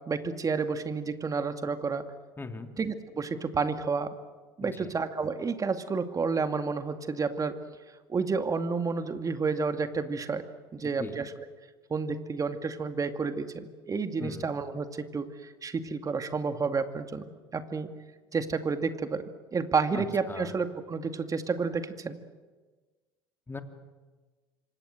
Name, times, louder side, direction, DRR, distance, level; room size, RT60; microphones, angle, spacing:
voice 1, 0.1-2.0 2.8-4.1 4.6-7.6 8.1-10.4 10.7-11.3 11.9-17.9 18.3-22.2, right 4 dB, 25° right, 8 dB, 2.3 m, -30 dB
voice 2, 2.4-2.7 4.6-4.9 11.0-11.2 14.2-14.5 19.9-20.6 23.5-23.6, left 3 dB, 15° left, 6 dB, 3.0 m, -39 dB
27.5 x 25.5 x 7.7 m, 1.3 s
hypercardioid pair, 75°, 13 cm